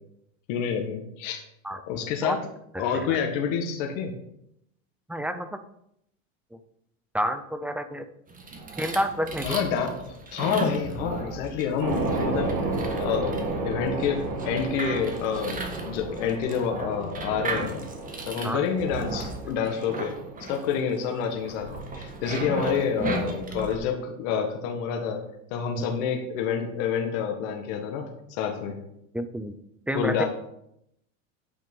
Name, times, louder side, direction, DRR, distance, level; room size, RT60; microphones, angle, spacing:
voice 1, 0.5-1.4 1.9-2.4 2.8-4.1 9.4-12.7 13.0-17.9 18.3-20.1 20.5-25.2 25.5-28.8 29.9-30.3, left 7 dB, 60° left, 3 dB, 1.7 m, -28 dB
voice 2, 2.7-3.2 5.1-5.5 7.1-8.0 8.8-9.6 18.4-18.6 25.8-25.9 29.1-29.5 29.9-30.2, equal, 5° right, 9 dB, 0.4 m, -29 dB
sound 1, 8.3-23.7, right 3 dB, 20° right, 1.5 m, -36 dB
sound 2, 11.8-23.8, right 3 dB, 65° right, 2.7 m, -34 dB
9.0 x 5.8 x 5.4 m, 0.77 s
supercardioid pair, 115°, 41 cm